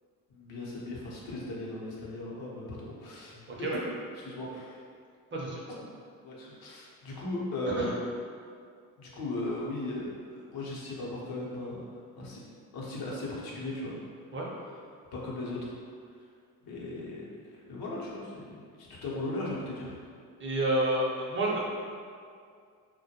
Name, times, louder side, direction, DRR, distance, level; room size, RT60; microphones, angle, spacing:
voice 1, 0.3-3.9 4.1-4.8 6.2-7.9 9.0-11.8 12.2-12.4 12.7-13.9 15.1-15.7 16.0-16.1 16.6-17.3 17.7-20.0, left 2 dB, 65° left, -5 dB, 0.8 m, -37 dB
voice 2, 3.5-3.8 5.3-5.6 7.8-7.9 14.3-14.5 20.4-21.6, right 1 dB, 30° right, -4 dB, 0.6 m, -29 dB
2.2 x 2.1 x 2.8 m, 2.2 s
supercardioid pair, 70°, 39 cm